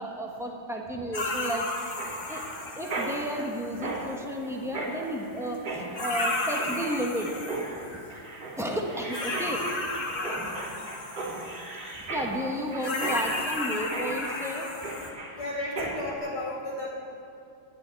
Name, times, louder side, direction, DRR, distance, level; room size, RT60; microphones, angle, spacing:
voice 1, 0.0-1.7 2.3-2.4 2.8-7.3 8.6-9.6 12.0-14.7, equal, ahead, 0 dB, 0.7 m, -32 dB
sound 1, 1.1-4.0 5.5-5.6 6.0-8.0 9.1-12.0 12.8-15.1, left 2 dB, 30° left, 1.2 m, -33 dB
Mechanisms, 2.0-16.2, right 2 dB, 60° right, 3.4 m, -37 dB
voice 2, 10.1-10.7 15.3-16.9, left 1 dB, 80° left, -6 dB, 3.3 m, -34 dB
10.5 x 7.6 x 9.5 m, 2.6 s
omnidirectional pair, 2.3 m